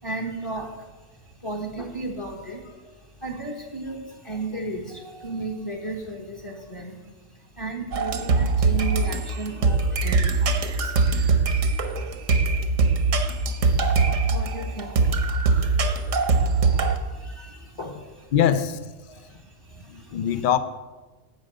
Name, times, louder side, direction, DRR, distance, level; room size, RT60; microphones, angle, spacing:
voice 1, 0.0-11.0 12.0-12.1 14.2-18.3 19.1-20.4, right 2 dB, 25° left, 1.3 m, -36 dB
sound 1, 7.9-17.0, right 4 dB, 80° right, 1.3 m, -22 dB
voice 2, 18.3-18.8 19.9-20.6, left 9 dB, 50° left, 0.7 m, -22 dB
12.0 x 5.1 x 7.8 m
omnidirectional pair, 1.3 m